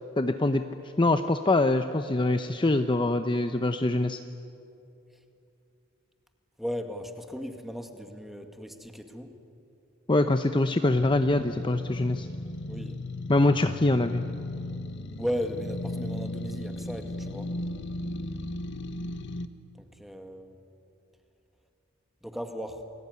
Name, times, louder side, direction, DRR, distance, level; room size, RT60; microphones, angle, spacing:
voice 1, 0.2-0.6 1.0-4.2 10.1-12.3 13.3-14.2, left 2 dB, 25° left, 8 dB, 0.7 m, -24 dB
voice 2, 6.6-9.3 12.7-13.0 15.2-17.5 19.8-20.6 22.2-22.8, equal, ahead, 5 dB, 1.9 m, -36 dB
sound 1, 11.0-19.5, left 1 dB, 60° left, 1.2 m, -36 dB
29.5 x 21.0 x 9.6 m, 2.7 s
head